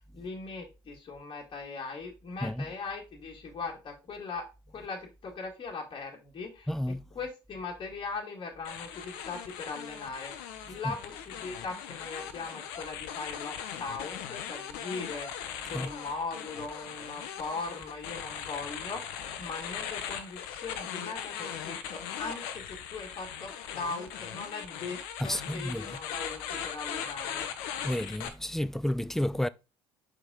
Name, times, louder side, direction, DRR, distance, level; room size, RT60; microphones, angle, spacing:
voice 1, 0.1-4.5 4.7-6.7 7.2-27.5, left 4 dB, 35° left, 1.8 m, -40 dB
voice 2, 2.4-2.7 6.7-7.0 10.8-10.9 15.6-15.9 25.2-26.0 27.8-29.5, left 1 dB, 5° left, 0.4 m, -31 dB
sound 1, 8.6-28.3, left 9 dB, 70° left, 0.8 m, -39 dB
6.1 x 4.9 x 3.6 m
hypercardioid pair, 60°, 13 cm